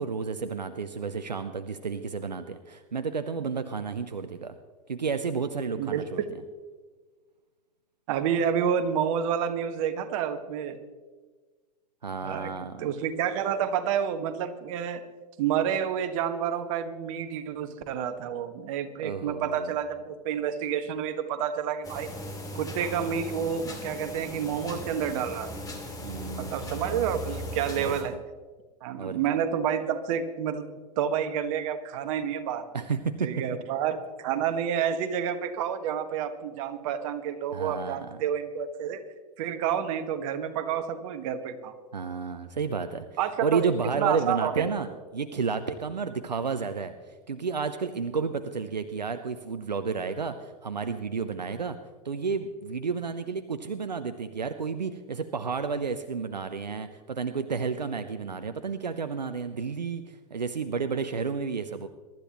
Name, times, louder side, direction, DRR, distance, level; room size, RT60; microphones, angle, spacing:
voice 1, 0.0-4.6 4.9-6.2 12.0-12.9 19.0-19.8 26.0-26.8 27.8-28.2 29.0-29.2 32.7-33.3 37.5-38.2 41.9-43.1 43.4-51.8 52.0-61.9, right 5 dB, 85° right, 10 dB, 0.7 m, -31 dB
voice 2, 8.1-10.8 12.2-12.5 12.8-15.0 15.4-22.1 22.5-25.5 26.3-28.1 28.8-30.7 31.0-32.7 33.2-39.0 39.4-41.7 43.2-43.7 44.0-44.7, right 8 dB, 50° right, 9 dB, 1.3 m, -29 dB
sound 1, 21.8-28.0, left 1 dB, 15° left, 2.5 m, -38 dB
23.0 x 12.0 x 3.0 m, 1.4 s
figure-of-eight pair, 95°, 21 cm